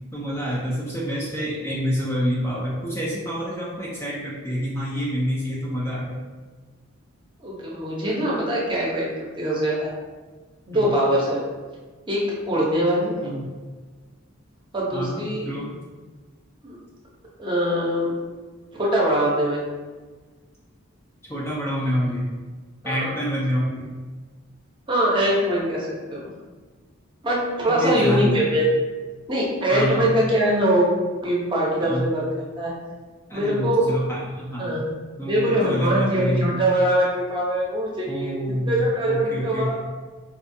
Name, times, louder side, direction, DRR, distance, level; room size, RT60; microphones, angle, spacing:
voice 1, 0.1-6.2 10.7-10.9 13.2-13.6 14.9-15.8 21.3-22.3 22.8-23.9 27.7-28.5 29.7-30.1 31.8-32.1 33.3-34.8 35.2-36.7 38.1-39.8, equal, 10° left, -6 dB, 0.4 m, -27 dB
voice 2, 7.4-9.1 9.4-9.9 10.7-11.4 12.1-12.2 12.5-13.3 14.7-15.5 16.6-16.8 17.4-18.1 18.7-19.6 22.8-23.1 24.9-26.2 27.2-28.7 29.3-30.9 31.2-32.2 32.6-32.7 33.3-33.8 34.6-34.8 35.2-39.8, right 1 dB, 20° right, -5 dB, 0.7 m, -22 dB
4.3 x 2.4 x 2.6 m, 1.4 s
head